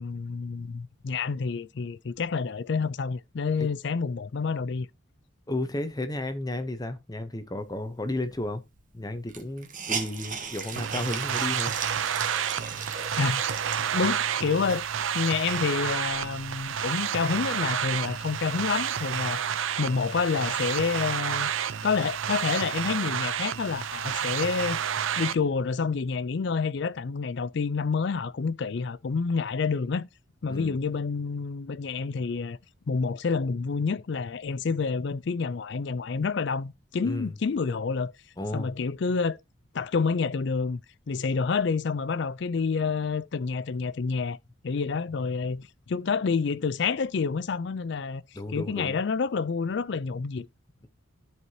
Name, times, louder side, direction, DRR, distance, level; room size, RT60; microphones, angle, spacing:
voice 1, 0.0-4.9 13.2-13.4 13.7-14.8 15.1-21.5 21.8-24.8 25.2-30.1 30.4-32.6 32.9-38.1 38.5-39.4 39.7-40.8 41.1-44.4 44.6-48.2 48.5-50.5, left 5 dB, 55° left, 0.4 m, -28 dB
voice 2, 5.5-8.6 8.9-11.7 12.7-12.8 30.5-30.8 37.0-37.3 38.4-38.7 48.3-49.0, left 1 dB, 20° left, 0.7 m, -33 dB
Hiss, 8.4-8.5 8.8-8.9 9.3-14.3 14.9-15.0 15.4-16.7, right 5 dB, 40° right, 1.5 m, -37 dB
sound 1, 10.8-25.3, right 8 dB, 70° right, 0.5 m, -30 dB
13.5 x 4.7 x 2.8 m
head